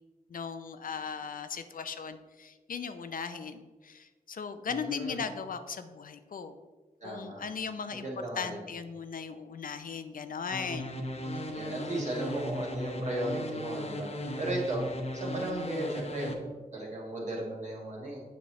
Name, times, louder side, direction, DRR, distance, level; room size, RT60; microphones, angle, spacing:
voice 1, 0.3-6.6 7.0-8.1 8.4-10.9 11.3-11.5, left 6 dB, 65° left, 9 dB, 0.5 m, -38 dB
voice 2, 4.7-5.2 7.0-7.4 7.9-8.6 11.5-14.1 14.4-14.9 15.1-16.3 16.7-18.2, right 1 dB, 50° right, -3 dB, 2.1 m, -35 dB
sound 1, 10.5-16.3, equal, 45° left, 0.9 m, -37 dB
7.2 x 6.1 x 3.1 m, 1.4 s
cardioid pair, 55°, 15 cm